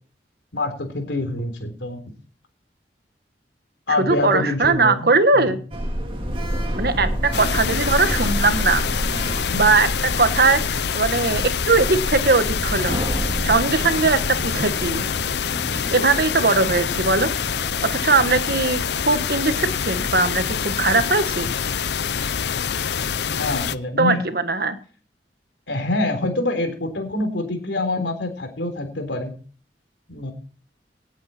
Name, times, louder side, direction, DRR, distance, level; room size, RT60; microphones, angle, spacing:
voice 1, 0.5-2.0 3.9-5.6 9.5-9.6 23.2-24.2 25.7-29.4 30.1-30.3, left 2 dB, 85° left, 7 dB, 3.7 m, -26 dB
voice 2, 3.9-5.6 6.7-8.8 9.5-13.0 13.4-15.0 15.9-17.3 17.8-18.8 19.1-21.5 24.0-24.8, right 3 dB, 55° right, 10 dB, 1.5 m, -20 dB
Sliding door, 5.7-15.3, equal, 30° right, 2.4 m, -28 dB
sound 1, 7.3-23.7, left 7 dB, 70° left, 0.6 m, -26 dB
sound 2, 13.0-18.0, equal, 10° right, 3.4 m, -39 dB
18.0 x 9.0 x 4.4 m, 0.42 s
head